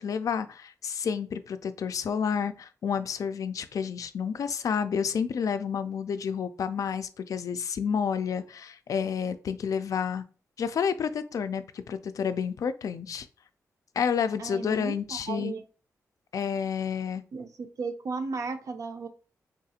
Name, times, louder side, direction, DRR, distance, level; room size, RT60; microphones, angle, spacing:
voice 1, 0.0-10.2 10.6-13.3 14.0-15.5 16.3-17.2, left 7 dB, 65° left, 11 dB, 0.3 m, -30 dB
voice 2, 14.4-15.6 17.3-17.5 17.8-19.1, right 4 dB, 60° right, 7 dB, 0.5 m, -35 dB
3.5 x 2.4 x 2.7 m, 0.36 s
cardioid pair, 85°, 6 cm